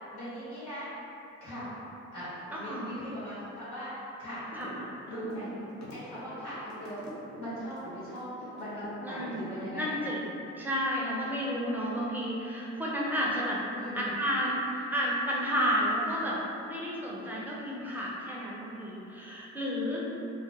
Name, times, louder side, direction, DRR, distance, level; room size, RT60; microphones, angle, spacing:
voice 1, 0.1-0.9 1.4-1.7 2.1-3.9 4.2-4.4 5.1-5.5 5.9-7.0 7.4-9.9 13.7-14.1, equal, 90° left, -12 dB, 1.1 m, -39 dB
voice 2, 2.5-2.9 4.5-5.4 9.0-9.4 9.7-10.3 10.6-13.6 13.9-16.4 16.6-20.2, equal, 5° right, -5 dB, 0.4 m, -32 dB
sound 1, 4.5-4.8 5.1-8.9 9.2-10.1, left 1 dB, 65° left, 0.6 m, -45 dB
2.3 x 2.1 x 2.7 m, 2.9 s
cardioid pair, 90°, 30 cm